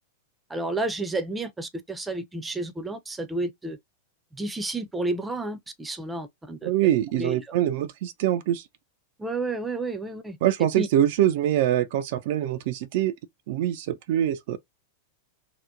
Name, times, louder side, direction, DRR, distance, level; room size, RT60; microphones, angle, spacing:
voice 1, 0.5-3.8 4.3-6.7 7.2-7.4 9.2-10.4 10.8-10.9, right 2 dB, 10° right, 0.6 m, -31 dB
voice 2, 6.6-8.7 10.4-13.1 13.5-14.6, right 12 dB, 55° right, 0.4 m, -24 dB
2.9 x 2.1 x 3.6 m
figure-of-eight pair, 95°, 0 cm